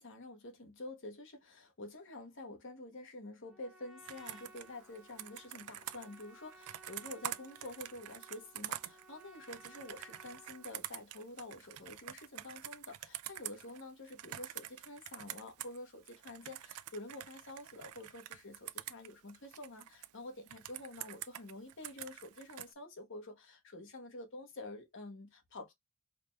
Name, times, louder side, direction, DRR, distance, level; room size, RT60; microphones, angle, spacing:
voice 1, 0.0-6.5 6.9-25.7, left 2 dB, 60° left, 1.1 m, -48 dB
Trumpet, 3.4-10.8, right 1 dB, ahead, 0.5 m, -59 dB
Computer keyboard, 4.1-15.8 16.1-20.1 20.5-22.7, right 13 dB, 85° right, 0.4 m, -46 dB
4.8 x 2.3 x 3.1 m
head